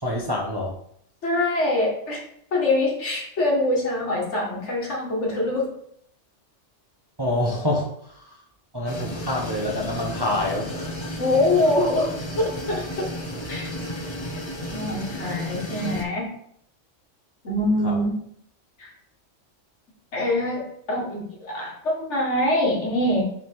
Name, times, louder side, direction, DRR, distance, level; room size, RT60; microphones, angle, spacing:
voice 1, 0.0-0.7 7.2-7.9 8.1-8.2 8.7-11.0 17.8-18.0, left 1 dB, 20° right, -2 dB, 0.8 m, -26 dB
voice 2, 1.2-2.2 2.5-5.7 11.2-12.1 12.4-13.1 13.5-13.7 14.7-16.3 17.4-18.2 18.8-18.9 20.1-23.2, left 1 dB, 70° left, -1 dB, 1.8 m, -24 dB
sound 1, 8.9-16.0, equal, 25° left, 0.7 m, -33 dB
5.9 x 3.6 x 4.5 m, 0.69 s
omnidirectional pair, 1.3 m